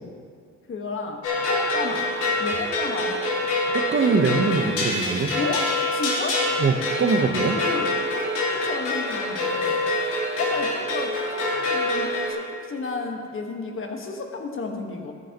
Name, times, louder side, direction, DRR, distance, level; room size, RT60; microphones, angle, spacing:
voice 1, 0.7-1.2 1.5-2.1 2.4-3.2 5.4-6.4 7.5-9.8 10.4-15.1, left 3 dB, 45° left, 3 dB, 1.4 m, -32 dB
sound 1, 1.2-12.3, left 2 dB, 85° left, 3.1 m, -26 dB
voice 2, 3.7-5.4 6.6-7.6, right 4 dB, 40° right, 5 dB, 1.0 m, -22 dB
13.5 x 11.5 x 2.9 m, 2.2 s
cardioid pair, 90°, 30 cm